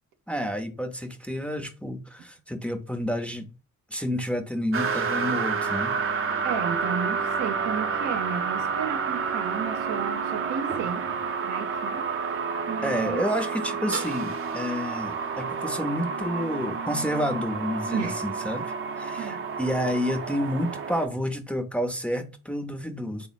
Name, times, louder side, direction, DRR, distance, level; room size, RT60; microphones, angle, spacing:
voice 1, 0.3-3.5 3.9-5.9 12.8-23.3, equal, 5° left, 0.5 m, -30 dB
sound 1, 4.7-21.1, right 5 dB, 45° right, 0.6 m, -29 dB
voice 2, 6.4-11.1 11.4-12.1 12.7-13.3 17.9-18.3 19.1-19.4, right 7 dB, 80° right, 0.7 m, -33 dB
3.5 x 2.0 x 3.9 m
cardioid pair, 90°, 30 cm